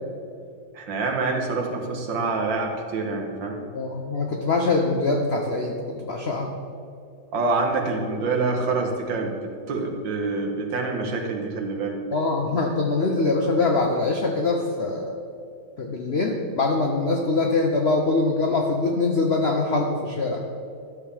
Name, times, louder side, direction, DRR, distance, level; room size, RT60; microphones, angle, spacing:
voice 1, 0.7-3.6 7.3-9.3 9.7-12.0, right 3 dB, 75° right, 2 dB, 1.8 m, -26 dB
voice 2, 3.7-6.5 12.1-15.1 15.8-20.4, left 3 dB, 70° left, 1 dB, 0.6 m, -23 dB
12.0 x 7.5 x 3.4 m, 2.5 s
omnidirectional pair, 2.1 m